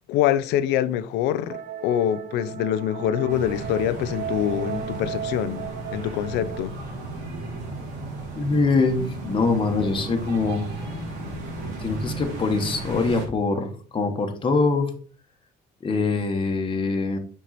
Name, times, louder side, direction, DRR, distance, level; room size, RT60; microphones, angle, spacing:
voice 1, 0.1-6.7, left 11 dB, 90° left, 0.5 m, -25 dB
sound 1, 1.5-6.7, right 8 dB, 50° right, 0.8 m, -35 dB
sound 2, 3.3-13.3, right 2 dB, 80° right, 2.4 m, -35 dB
voice 2, 8.3-10.7 11.8-14.9 15.8-17.2, left 3 dB, 30° left, 1.2 m, -23 dB
6.1 x 4.5 x 4.1 m
cardioid pair, 110°, 17 cm